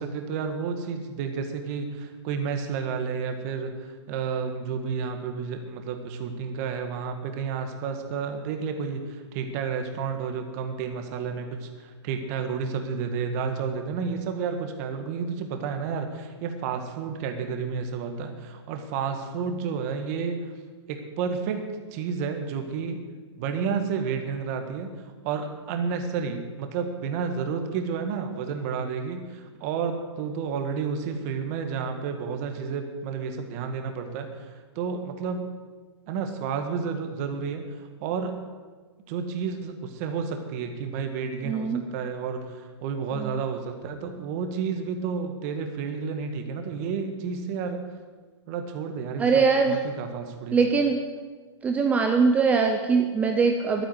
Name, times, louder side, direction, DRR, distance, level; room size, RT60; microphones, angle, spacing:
voice 1, 0.0-20.5 20.9-21.6 21.9-23.0 23.4-35.5 36.1-38.3 39.1-47.8 48.5-50.6, right 6 dB, 35° right, 6 dB, 1.6 m, -31 dB
voice 2, 41.5-41.8 49.2-49.8 50.5-51.0 51.6-53.9, right 5 dB, 10° right, 4 dB, 0.6 m, -22 dB
12.5 x 9.0 x 8.0 m, 1.4 s
hypercardioid pair, 160°, 15 cm